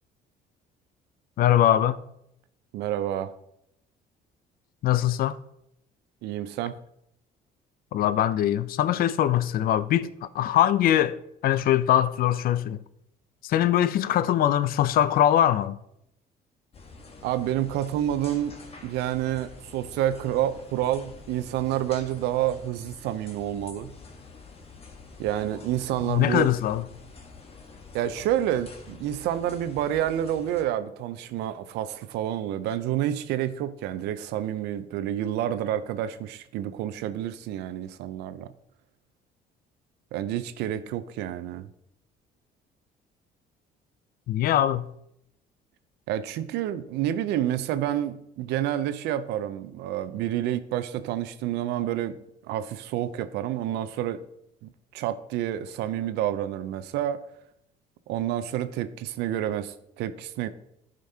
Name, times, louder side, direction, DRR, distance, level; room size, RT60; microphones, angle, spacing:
voice 1, 1.4-2.0 4.8-5.4 7.9-12.8 13.4-15.8 26.1-26.8 44.3-44.9, left 11 dB, 60° left, 0.5 m, -22 dB
voice 2, 2.7-3.3 6.2-6.7 17.2-18.6 18.8-23.9 25.2-26.5 27.9-38.5 40.1-41.7 46.1-52.2 52.5-54.2 54.6-57.2 58.1-60.5, right 11 dB, 85° right, 0.6 m, -29 dB
sound 1, 16.7-30.6, left 4 dB, 35° left, 1.3 m, -47 dB
12.5 x 5.1 x 2.8 m
cardioid pair, 110°, 17 cm